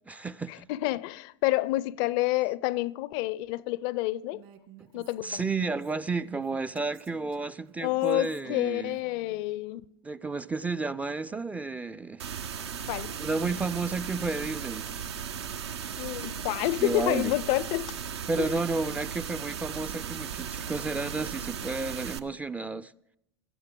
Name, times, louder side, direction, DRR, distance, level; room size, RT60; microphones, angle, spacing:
voice 1, 0.1-0.6 4.8-9.0 10.0-12.2 13.2-14.9 16.1-16.3 16.6-17.4 18.3-22.9, right 3 dB, 10° right, 0.4 m, -32 dB
voice 2, 0.7-4.4 4.9-5.4 7.8-9.8 12.9-13.2 16.0-17.9 18.4-18.6, left 18 dB, 50° left, 0.5 m, -28 dB
Female speech woman speaking, 4.3-9.4, right 13 dB, 55° right, 2.0 m, -54 dB
sound 1, 12.2-22.2, right 7 dB, 75° right, 0.8 m, -36 dB
17.0 x 12.5 x 3.8 m
hypercardioid pair, 90°, 14 cm